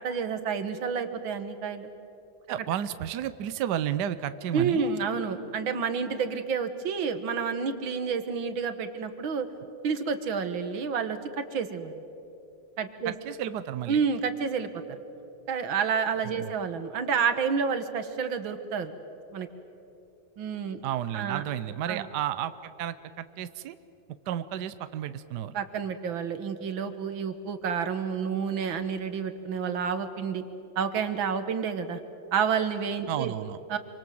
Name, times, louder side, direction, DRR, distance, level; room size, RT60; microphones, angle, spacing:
voice 1, 0.0-1.9 4.5-9.5 9.8-12.0 12.8-13.1 13.9-14.7 15.5-18.9 19.3-19.5 20.4-20.8 21.1-21.4 21.9-22.1 25.5-30.4 30.8-32.0 32.3-33.3 33.7-33.8, right 6 dB, 85° right, 9 dB, 2.2 m, -29 dB
voice 2, 2.5-4.9 13.0-14.0 16.4-16.5 20.8-23.7 24.3-25.5 33.1-33.6, right 11 dB, 65° right, 13 dB, 1.3 m, -32 dB
27.5 x 24.5 x 7.8 m, 2.9 s
omnidirectional pair, 2.1 m